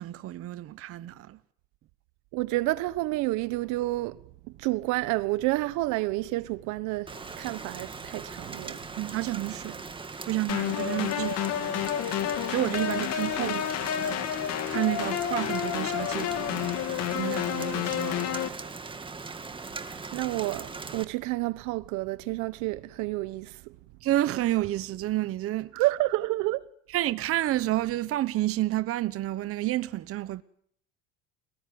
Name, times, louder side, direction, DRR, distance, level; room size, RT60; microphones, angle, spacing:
voice 1, 0.0-1.4 9.0-9.8 10.3-12.0 12.2-18.5 24.0-25.7 26.9-30.4, right 15 dB, 45° right, 1.1 m, -30 dB
voice 2, 2.3-4.2 4.6-7.1 7.4-8.8 11.2-11.3 13.4-13.6 20.1-23.5 25.7-26.7, right 19 dB, 70° right, 1.3 m, -29 dB
Rain, 7.1-21.0, right 4 dB, 15° right, 2.1 m, -40 dB
sound 1, 10.5-18.5, left 11 dB, 55° left, 2.5 m, -30 dB
30.0 x 19.0 x 9.5 m
cardioid pair, 125°, 31 cm